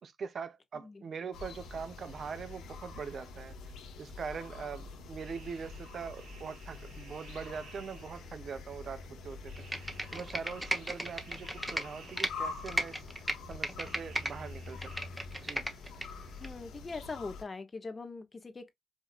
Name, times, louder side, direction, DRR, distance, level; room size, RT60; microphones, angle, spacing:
voice 1, 0.0-15.1 15.4-15.6, right 6 dB, 45° right, 0.7 m, -43 dB
sound 1, 1.3-17.4, left 4 dB, 90° left, 1.2 m, -46 dB
sound 2, 5.2-8.6 9.5-12.9 13.8-15.1, right 5 dB, 80° right, 1.8 m, -57 dB
Computer keyboard, 9.6-12.3 12.7-14.3 14.7-16.1 16.4-16.5, right 1 dB, 5° right, 0.8 m, -35 dB
voice 2, 16.4-18.7, left 3 dB, 25° left, 0.9 m, -42 dB
5.1 x 2.6 x 2.3 m
cardioid pair, 125°, 0 cm